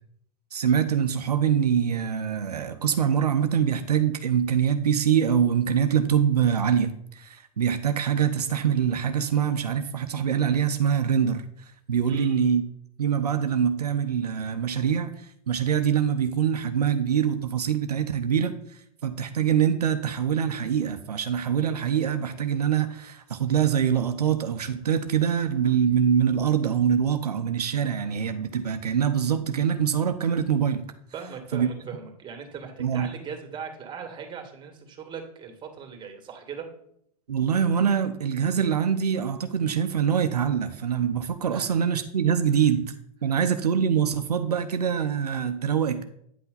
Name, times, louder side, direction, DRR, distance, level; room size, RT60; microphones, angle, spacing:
voice 1, 0.5-11.4 11.9-12.6 13.0-30.8 31.5-31.7 32.8-33.1 37.3-42.9 43.2-46.0, right 8 dB, 90° right, 8 dB, 0.6 m, -24 dB
voice 2, 12.1-12.5 31.1-36.7 41.5-41.7 43.2-43.4, right 6 dB, 25° right, 3 dB, 2.1 m, -39 dB
9.6 x 5.7 x 4.0 m, 0.71 s
hypercardioid pair, 105°, 19 cm